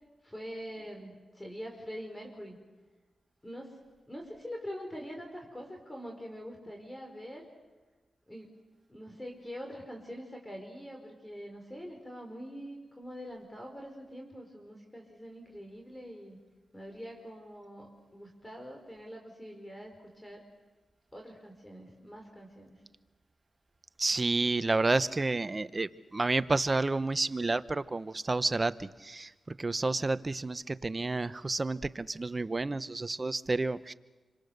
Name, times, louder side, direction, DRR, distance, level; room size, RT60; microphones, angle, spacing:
voice 1, 0.2-2.6 3.4-3.8 4.1-7.5 8.3-8.5 8.9-16.4 16.7-20.4 21.1-22.8, equal, 15° left, 2 dB, 4.9 m, -44 dB
voice 2, 24.0-33.9, right 3 dB, 35° right, 14 dB, 0.9 m, -30 dB
28.0 x 25.0 x 6.7 m, 1.2 s
cardioid pair, 55°, 0 cm